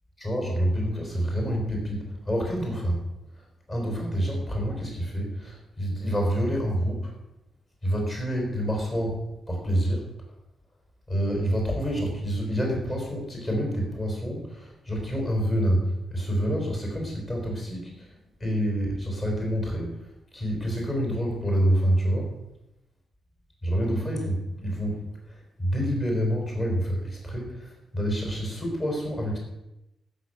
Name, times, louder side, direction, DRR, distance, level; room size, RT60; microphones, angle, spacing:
voice 1, 0.2-3.0 3.7-7.1 7.8-9.2 9.5-10.1 11.1-18.1 18.4-19.9 20.3-22.3 23.6-25.0 25.3-29.4, equal, 25° left, 0 dB, 5.0 m, -27 dB
14.5 x 6.7 x 8.2 m, 0.91 s
wide cardioid pair, 175°, 0 cm